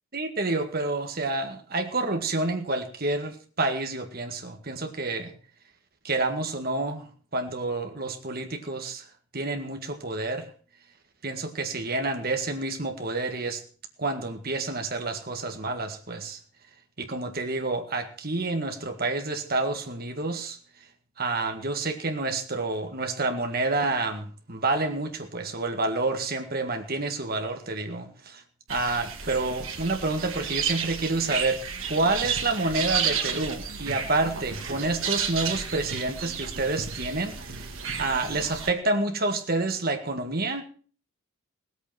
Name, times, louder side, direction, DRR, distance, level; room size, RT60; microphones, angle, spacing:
voice 1, 0.1-5.3 6.0-7.0 7.3-9.1 9.3-10.5 11.2-13.6 14.0-16.4 17.0-20.6 21.2-28.4 28.7-31.6 31.9-37.3 38.0-40.6, right 2 dB, 45° right, 5 dB, 1.9 m, -28 dB
sound 1, 28.7-38.7, right 6 dB, 65° right, 2.2 m, -32 dB
18.0 x 8.4 x 5.9 m, 0.42 s
head